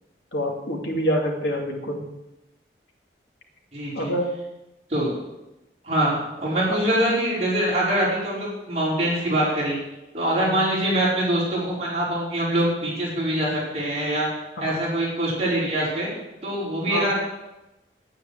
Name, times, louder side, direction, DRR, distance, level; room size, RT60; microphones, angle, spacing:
voice 1, 0.3-2.0 3.9-4.3 6.7-6.8 10.4-10.5 14.6-14.8 16.9-17.0, equal, 85° left, 1 dB, 2.6 m, -26 dB
voice 2, 3.7-4.1 4.9-5.1 5.8-9.8 10.1-14.3 14.6-16.1 16.4-17.1, right 1 dB, 35° right, -6 dB, 4.6 m, -24 dB
9.9 x 9.2 x 8.1 m, 0.96 s
head